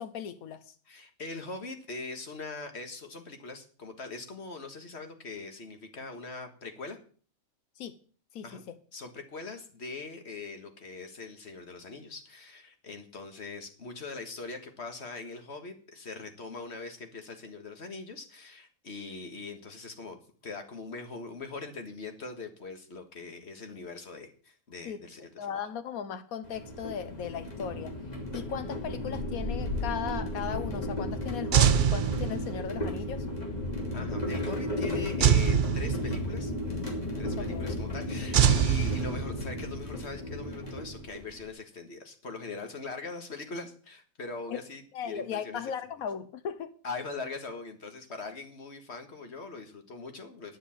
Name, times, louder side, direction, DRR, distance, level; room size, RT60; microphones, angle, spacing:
voice 1, 0.0-0.7 7.8-7.9 8.3-8.8 24.8-25.0 25.4-27.9 28.3-33.2 37.4-37.8 44.5-44.6 44.9-46.7, left 8 dB, 85° left, 1.3 m, -37 dB
voice 2, 0.9-7.0 8.4-8.6 8.9-20.2 20.4-25.5 33.9-36.5 37.2-45.7 46.8-50.6, left 3 dB, 50° left, 1.9 m, -41 dB
sound 1, 26.4-41.4, left 1 dB, 30° left, 3.0 m, -34 dB
sound 2, 31.5-32.8 35.2-36.5 38.3-39.6, right 9 dB, 60° right, 0.5 m, -24 dB
10.0 x 7.3 x 7.2 m
omnidirectional pair, 1.5 m